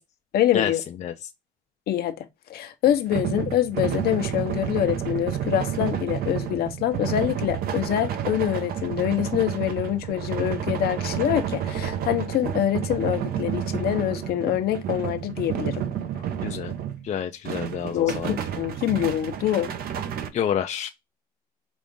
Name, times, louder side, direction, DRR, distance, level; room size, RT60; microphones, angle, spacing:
voice 1, 0.3-0.8 1.9-15.8 17.9-19.7, left 12 dB, 65° left, 0.8 m, -25 dB
sound 1, 2.9-17.1 17.4-20.3, right 9 dB, 65° right, 0.7 m, -30 dB
voice 2, 16.4-16.7 17.0-18.4 20.3-20.9, left 9 dB, 45° left, 0.5 m, -28 dB
5.1 x 2.5 x 3.6 m
cardioid pair, 110°, 17 cm